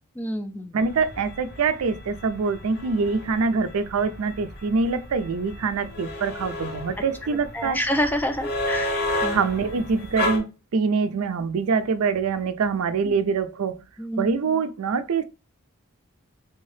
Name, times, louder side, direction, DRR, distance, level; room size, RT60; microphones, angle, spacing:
voice 1, 0.2-0.8 7.5-9.0 9.2-9.4 13.1-13.2 14.0-14.3, equal, 10° left, 0.3 m, -27 dB
voice 2, 0.7-7.8 9.3-13.8 14.2-15.2, right 5 dB, 75° right, 0.4 m, -24 dB
sound 1, 0.8-10.4, left 1 dB, 45° left, 0.8 m, -32 dB
3.4 x 2.7 x 3.2 m
head